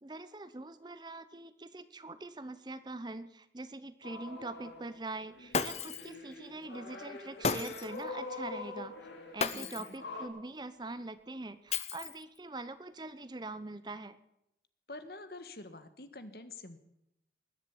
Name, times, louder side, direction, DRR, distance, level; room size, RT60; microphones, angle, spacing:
voice 1, 0.0-8.9 9.3-14.2, right 2 dB, 25° right, 13 dB, 0.8 m, -43 dB
sound 1, 4.0-5.0 5.3-10.3, left 3 dB, 80° left, 2.8 m, -45 dB
Shatter, 5.5-6.1 7.4-8.0 9.4-10.0 11.7-12.4, left 5 dB, 35° left, 0.8 m, -34 dB
voice 2, 9.5-10.0 14.9-16.8, left 2 dB, 60° left, 10 dB, 1.5 m, -47 dB
20.5 x 7.4 x 9.6 m, 0.82 s
head